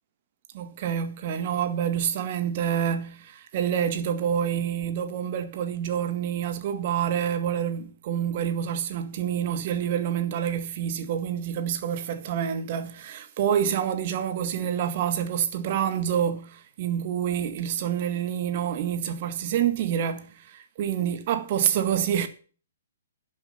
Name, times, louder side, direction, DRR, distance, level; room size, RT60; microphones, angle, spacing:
voice 1, 0.5-22.3, right 9 dB, 45° right, 1.8 m, -27 dB
11.5 x 7.5 x 5.8 m
figure-of-eight pair, 120°, 0 cm